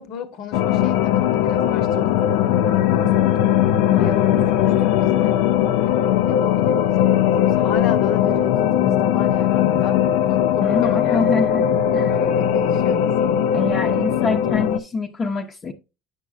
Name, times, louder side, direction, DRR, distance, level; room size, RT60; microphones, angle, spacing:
voice 1, 0.0-3.5 4.0-4.4 4.8-5.4 5.8-11.4 12.1-13.1, left 6 dB, 65° left, 1.0 m, -32 dB
sound 1, 0.5-14.8, left 10 dB, 80° left, 0.5 m, -19 dB
voice 2, 10.6-11.7 11.9-12.2 13.5-15.7, left 3 dB, 35° left, 0.8 m, -25 dB
8.9 x 6.2 x 2.4 m
supercardioid pair, 100°, 0 cm